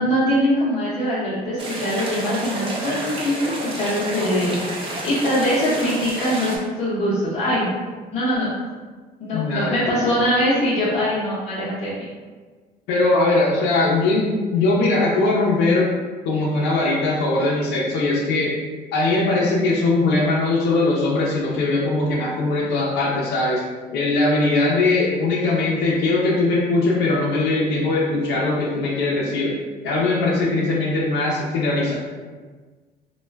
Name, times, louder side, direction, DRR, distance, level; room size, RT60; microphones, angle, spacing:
voice 1, 0.0-7.7 8.1-8.5 9.2-12.0, equal, 40° left, -9 dB, 0.8 m, -22 dB
sound 1, 1.6-6.6, right 1 dB, 30° right, 0.6 m, -30 dB
voice 2, 9.3-10.2 12.9-15.9 16.2-18.5 18.9-23.6 23.9-29.5 29.8-31.9, left 2 dB, 85° left, -4 dB, 0.6 m, -20 dB
2.3 x 2.1 x 3.3 m, 1.4 s
cardioid pair, 110°, 17 cm